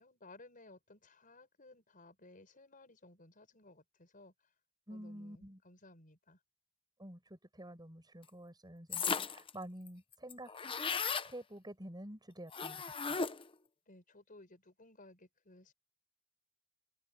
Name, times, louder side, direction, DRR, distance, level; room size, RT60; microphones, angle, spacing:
voice 1, 0.0-4.3 4.9-6.4 13.9-15.7, left 2 dB, 40° left, 5.2 m, -59 dB
voice 2, 4.9-5.6 7.0-10.5 11.2-12.8 13.1-13.2, right 1 dB, 20° right, 7.9 m, -49 dB
sound 1, 8.9-9.5 9.9-10.0 10.1-11.3 12.5-13.5, left 5 dB, 25° left, 0.8 m, -36 dB
head